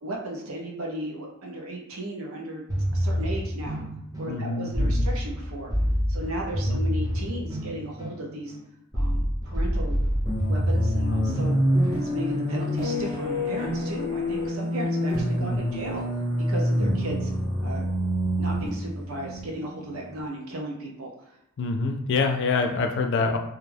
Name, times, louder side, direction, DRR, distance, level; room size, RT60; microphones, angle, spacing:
voice 1, 0.0-2.6 2.9-3.8 4.2-5.7 6.1-8.6 8.9-10.0 10.5-11.6 11.9-16.1 16.5-17.3 17.6-18.0 18.4-21.1, right 1 dB, 80° right, 0 dB, 0.6 m, -35 dB
sound 1, 2.7-12.5, equal, 20° right, 0.6 m, -27 dB
voice 2, 4.3-5.1 6.7-6.8 15.4-15.8 21.6-23.4, left 4 dB, 55° left, 4 dB, 0.4 m, -26 dB
sound 2, 10.3-20.1, equal, 35° right, 1.0 m, -27 dB
2.3 x 2.2 x 3.2 m, 0.83 s
head